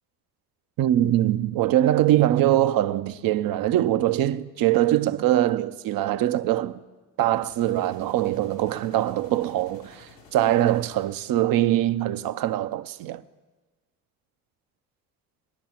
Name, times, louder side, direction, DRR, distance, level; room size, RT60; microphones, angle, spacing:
voice 1, 0.8-6.8 7.2-13.2, right 13 dB, 55° right, 0.6 m, -23 dB
sound 1, 7.4-11.4, left 3 dB, 90° left, 2.7 m, -52 dB
21.5 x 10.5 x 3.0 m
hypercardioid pair, 60°, 42 cm